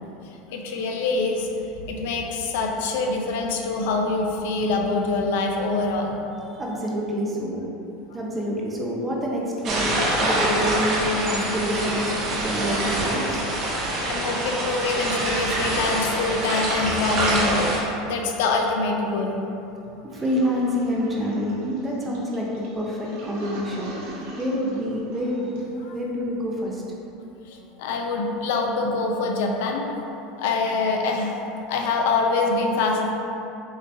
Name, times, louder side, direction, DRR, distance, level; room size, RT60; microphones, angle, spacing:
voice 1, 0.5-1.5 1.9-6.2 14.1-19.4 27.5-29.8 30.4-31.3 31.7-33.1, left 3 dB, 75° left, 1 dB, 0.5 m, -25 dB
voice 2, 6.6-7.6 8.1-13.4 20.1-25.6 25.9-26.8, equal, 15° right, -3 dB, 0.6 m, -27 dB
sound 1, 9.6-17.8, right 1 dB, 35° right, 1.0 m, -25 dB
Toilet flush, 20.1-25.8, equal, 75° right, 1.3 m, -42 dB
6.4 x 2.9 x 2.6 m, 3.0 s
supercardioid pair, 155°, 0 cm